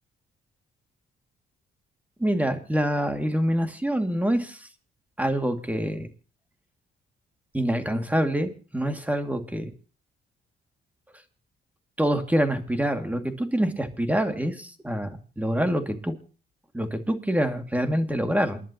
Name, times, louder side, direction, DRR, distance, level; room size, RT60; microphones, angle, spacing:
voice 1, 2.2-4.6 5.2-6.1 7.5-9.7 12.0-15.1 15.4-16.1 16.7-18.6, equal, 5° right, 6 dB, 2.4 m, -26 dB
28.5 x 11.0 x 3.0 m, 0.39 s
cardioid pair, 90°, 20 cm